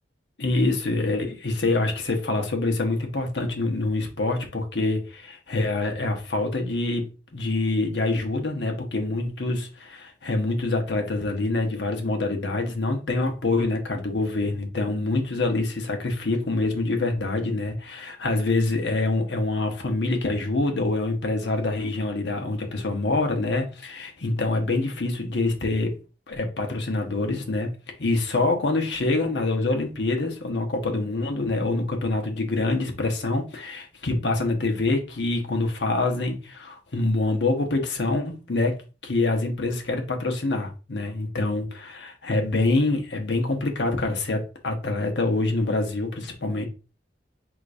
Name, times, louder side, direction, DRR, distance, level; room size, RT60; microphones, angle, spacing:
voice 1, 0.4-7.1 7.3-25.9 26.3-27.7 28.0-38.8 39.0-46.6, left 2 dB, 80° left, 1.1 m, -25 dB
4.9 x 3.7 x 2.6 m
head